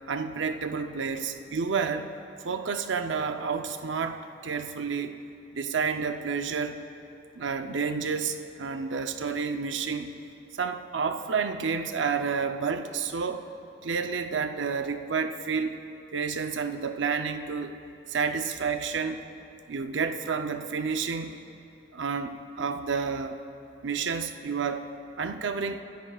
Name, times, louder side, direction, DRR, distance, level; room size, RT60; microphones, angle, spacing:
voice 1, 0.1-2.1 2.4-5.1 5.5-6.8 7.3-10.1 10.5-13.5 13.8-15.8 16.1-17.8 18.1-19.2 19.7-21.4 21.9-23.4 23.8-24.9 25.2-25.8, right 5 dB, 85° right, 7 dB, 0.6 m, -30 dB
28.0 x 10.5 x 2.4 m, 2.7 s
head